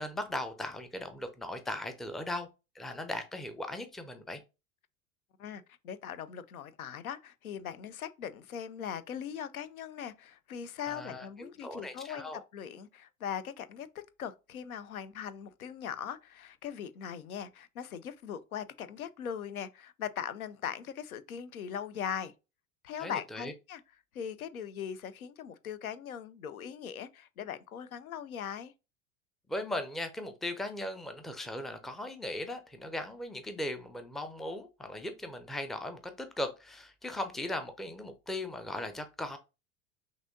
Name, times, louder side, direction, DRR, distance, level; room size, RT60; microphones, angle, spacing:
voice 1, 0.0-2.5 2.8-4.4 10.9-12.4 23.0-23.5 29.5-39.4, left 1 dB, ahead, 0.4 m, -38 dB
voice 2, 5.4-22.3 22.8-23.8 24.1-28.7, left 8 dB, 85° left, 0.5 m, -40 dB
6.0 x 2.7 x 2.6 m
hypercardioid pair, 80°, 42 cm